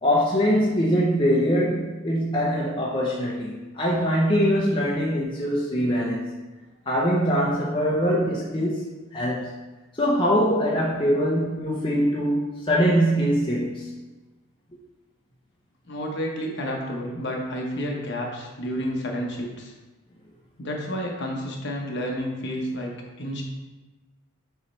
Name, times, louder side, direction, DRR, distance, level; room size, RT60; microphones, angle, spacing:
voice 1, 0.0-6.3 6.9-9.5 9.9-13.9, equal, 20° left, -4 dB, 0.6 m, -23 dB
voice 2, 15.9-19.7 20.6-23.4, equal, 50° left, 0 dB, 1.0 m, -30 dB
6.8 x 3.1 x 4.4 m, 1.2 s
head